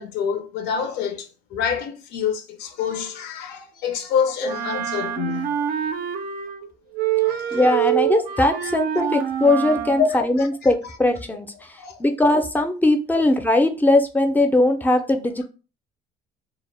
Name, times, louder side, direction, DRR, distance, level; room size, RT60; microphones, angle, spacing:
voice 1, 0.0-5.6 7.2-7.7 8.1-8.2 8.6-8.7 10.0-10.5 11.8-12.2 13.1-13.2, left 7 dB, 80° left, 0.5 m, -27 dB
Wind instrument woodwind instrument, 4.4-6.7 6.9-10.1, right 10 dB, 65° right, 0.4 m, -25 dB
voice 2, 7.5-11.5 12.0-15.4, left 2 dB, 10° left, 0.3 m, -20 dB
2.1 x 2.1 x 3.2 m
cardioid pair, 110°, 17 cm